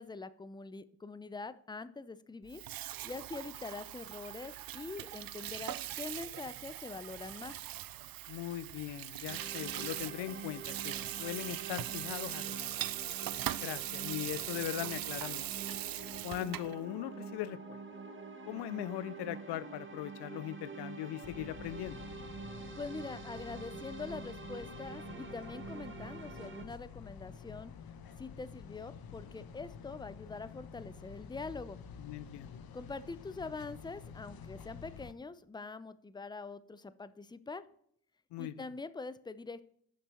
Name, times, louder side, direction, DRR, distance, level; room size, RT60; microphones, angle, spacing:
voice 1, 0.0-2.6 3.0-7.6 22.8-27.7 28.2-31.8 32.7-37.6 38.4-39.6, left 3 dB, 10° left, 15 dB, 0.6 m, -44 dB
Water tap faucet / Sink (filling or washing), 2.4-16.8, right 14 dB, 60° right, 0.5 m, -41 dB
voice 2, 8.3-12.8 13.6-15.5 16.2-17.8 18.5-22.0 32.0-32.6 38.3-38.7, left 13 dB, 85° left, 18 dB, 0.5 m, -40 dB
sound 1, 9.3-26.7, right 4 dB, 30° right, 1.5 m, -47 dB
sound 2, 21.2-35.1, left 7 dB, 60° left, 0.9 m, -49 dB
7.3 x 6.0 x 5.7 m, 0.65 s
cardioid pair, 70°, 40 cm